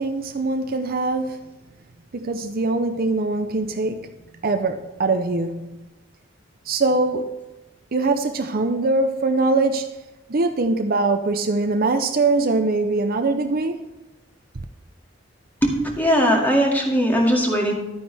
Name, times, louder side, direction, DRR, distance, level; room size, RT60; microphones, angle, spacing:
voice 1, 0.0-1.4 2.1-4.1 4.4-5.7 6.7-7.3 7.9-9.9 10.3-13.8 14.6-14.7, right 3 dB, 50° right, 0.6 m, -22 dB
voice 2, 15.6-17.7, equal, 10° left, 2.2 m, -19 dB
12.0 x 9.4 x 3.4 m
head